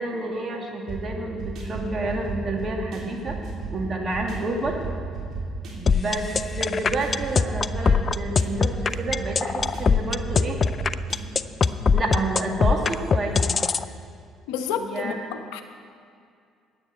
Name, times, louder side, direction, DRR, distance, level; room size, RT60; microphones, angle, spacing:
voice 1, 0.0-3.4 3.7-4.8 5.8-6.3 6.6-10.6 11.9-13.5 14.8-15.2, right 2 dB, 40° right, 1 dB, 2.5 m, -29 dB
sound 1, 0.9-11.8, right 3 dB, 55° right, 3.2 m, -34 dB
sound 2, 5.9-13.8, left 5 dB, 40° left, 0.5 m, -21 dB
voice 2, 14.5-15.6, left 7 dB, 75° left, 7 dB, 0.9 m, -30 dB
9.6 x 8.8 x 9.4 m, 2.3 s
hypercardioid pair, 55°, 0 cm